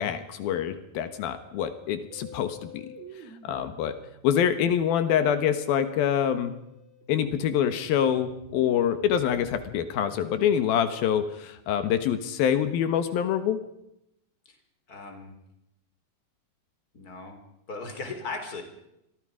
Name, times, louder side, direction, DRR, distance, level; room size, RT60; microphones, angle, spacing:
voice 1, 0.0-2.9 3.4-6.5 7.1-13.6, left 9 dB, 85° left, 10 dB, 3.2 m, -26 dB
Musical instrument, 2.1-11.2, left 1 dB, 80° right, 4.3 m, -50 dB
voice 2, 14.9-15.3 16.9-17.4 17.7-18.6, left 3 dB, 25° left, 5 dB, 3.8 m, -37 dB
27.5 x 23.0 x 5.0 m, 0.82 s
omnidirectional pair, 4.1 m